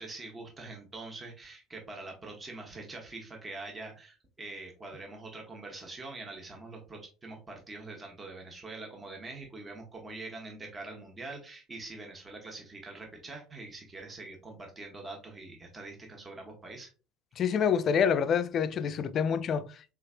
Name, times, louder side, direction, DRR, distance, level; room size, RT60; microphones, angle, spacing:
voice 1, 0.0-16.9, right 3 dB, 25° right, 0.9 m, -44 dB
voice 2, 17.4-19.9, left 7 dB, 50° left, 0.3 m, -27 dB
3.4 x 3.1 x 2.4 m
hypercardioid pair, 70°, 0 cm